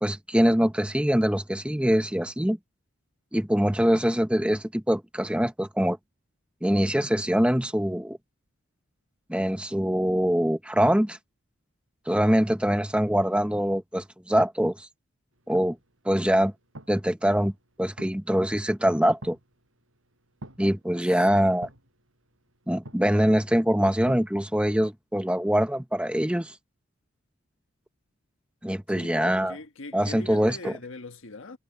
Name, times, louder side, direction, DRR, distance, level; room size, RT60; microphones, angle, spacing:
voice 1, 0.0-2.6 3.3-6.0 6.6-8.2 9.3-11.2 12.1-14.9 15.5-15.8 16.0-16.5 16.9-17.5 17.8-19.4 20.6-21.7 22.7-26.6 28.6-29.6 29.9-30.8, equal, 5° right, 0.9 m, -24 dB
sound 1, 15.3-24.3, right 1 dB, 70° right, 6.4 m, -50 dB
voice 2, 28.9-31.6, left 3 dB, 70° left, 1.4 m, -41 dB
head